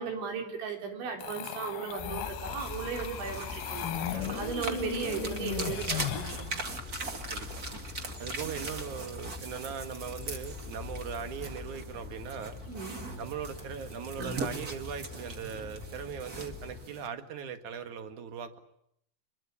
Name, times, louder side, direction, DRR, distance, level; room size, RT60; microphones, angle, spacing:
voice 1, 0.0-6.6 12.7-13.0, right 6 dB, 80° right, 4 dB, 6.2 m, -36 dB
sound 1, 1.2-6.5, left 10 dB, 60° left, 2.7 m, -37 dB
sound 2, 2.0-16.9, left 4 dB, 15° left, 2.1 m, -44 dB
sound 3, 2.6-17.1, right 3 dB, 35° right, 1.4 m, -41 dB
voice 2, 8.2-12.6 13.2-18.6, right 7 dB, 55° right, 9 dB, 2.7 m, -39 dB
27.0 x 22.5 x 8.5 m, 0.73 s
omnidirectional pair, 5.2 m